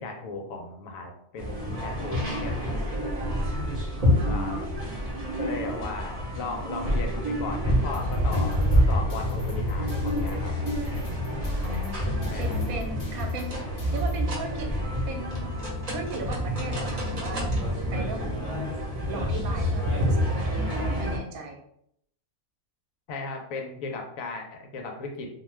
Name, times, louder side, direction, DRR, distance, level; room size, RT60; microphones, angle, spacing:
voice 1, 0.0-2.9 4.2-4.7 5.4-10.5 12.3-12.6 23.1-25.3, left 3 dB, 75° left, 3 dB, 1.0 m, -36 dB
sound 1, 1.4-21.2, equal, 35° right, 0.7 m, -27 dB
voice 2, 3.9-4.7 11.6-13.6 13.9-14.8 15.1-15.5 15.9-17.5 17.9-18.5 19.0-21.6, right 2 dB, 80° right, 2 dB, 1.1 m, -37 dB
sound 2, 7.9-14.2, left 3 dB, 55° left, 0.7 m, -40 dB
2.5 x 2.2 x 3.2 m, 0.72 s
omnidirectional pair, 1.5 m